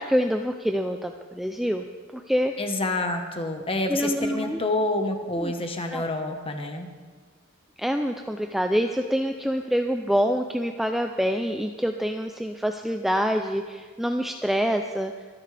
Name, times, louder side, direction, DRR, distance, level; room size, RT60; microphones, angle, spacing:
voice 1, 0.0-1.8 2.1-2.5 3.9-4.6 5.4-5.5 5.9-6.1 7.8-15.1, equal, ahead, 5 dB, 0.4 m, -26 dB
voice 2, 2.6-6.9, left 2 dB, 25° left, 5 dB, 1.2 m, -28 dB
24.0 x 10.5 x 3.4 m, 1.5 s
head